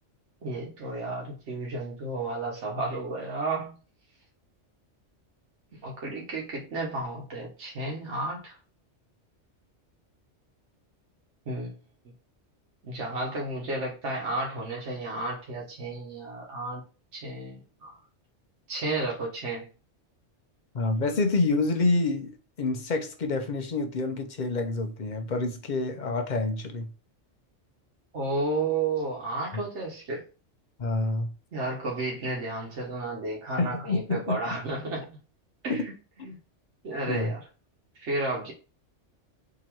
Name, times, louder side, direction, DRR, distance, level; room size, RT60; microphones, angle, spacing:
voice 1, 0.4-3.7 5.8-8.5 11.5-11.7 12.8-16.8 17.1-18.0 18.7-19.7 28.1-30.2 31.5-35.2 35.6-36.0 36.2-36.4 36.8-37.4 37.9-38.5, right 2 dB, 75° right, 1.3 m, -32 dB
voice 2, 20.7-26.9 29.5-29.6 30.8-31.3 33.6-34.4 35.7-35.8 36.2-36.3 37.1-37.3, left 3 dB, 50° left, 0.7 m, -27 dB
3.8 x 2.9 x 4.4 m
omnidirectional pair, 1.2 m